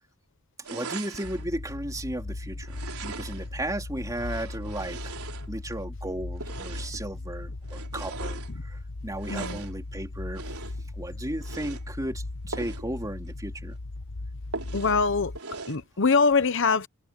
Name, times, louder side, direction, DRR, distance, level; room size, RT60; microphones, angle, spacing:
sound 1, 0.6-1.5 2.6-3.6 4.1-5.8 6.4-7.1 7.6-8.5 9.2-9.8 10.3-10.9 11.4-11.9 12.5-12.9 13.3-13.4 13.7-13.8 14.5-15.0 15.4-15.9, right 4 dB, 80° right, 3.8 m, -40 dB
voice 1, 0.7-5.1 5.5-10.4 11.0-13.7, right 1 dB, 15° right, 3.8 m, -35 dB
sound 2, 1.2-15.4, left 2 dB, 75° left, 1.0 m, -38 dB
voice 2, 9.3-9.6 14.7-15.3 15.7-16.9, left 4 dB, 60° left, 0.9 m, -23 dB
head